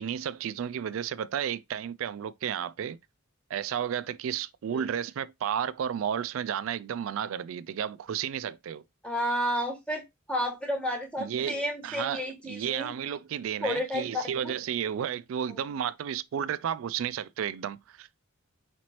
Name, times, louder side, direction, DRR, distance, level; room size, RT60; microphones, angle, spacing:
voice 1, 0.0-3.0 3.5-8.8 11.2-18.2, right 9 dB, 75° right, 0.3 m, -32 dB
voice 2, 9.0-12.9 13.6-14.5, equal, 5° left, 1.2 m, -31 dB
5.0 x 3.1 x 2.9 m
head